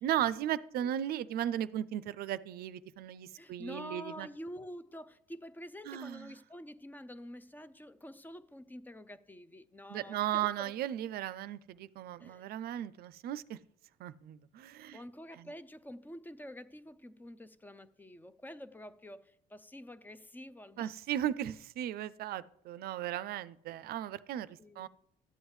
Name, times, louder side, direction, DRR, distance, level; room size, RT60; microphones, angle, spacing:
voice 1, 0.0-4.3 5.9-6.3 9.9-13.6 14.0-15.0 15.4-15.5 20.8-24.9, right 11 dB, 65° right, 0.4 m, -36 dB
voice 2, 3.4-10.7 12.2-12.5 14.9-20.9 24.6-24.9, equal, 10° left, 0.4 m, -48 dB
13.0 x 8.0 x 3.2 m
cardioid pair, 110°, 17 cm